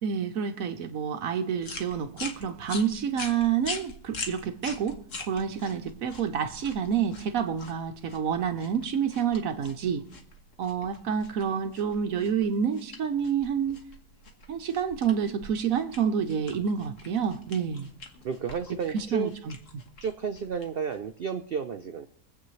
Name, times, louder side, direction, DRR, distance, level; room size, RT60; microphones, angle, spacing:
voice 1, 0.0-10.0 10.6-13.8 14.5-17.9 18.9-19.5, right 7 dB, 65° right, 1.1 m, -28 dB
sound 1, 1.6-21.2, left 3 dB, 50° left, 1.7 m, -44 dB
voice 2, 18.2-19.3 20.0-22.1, right 6 dB, 80° right, 0.5 m, -32 dB
24.0 x 8.3 x 3.2 m
omnidirectional pair, 1.7 m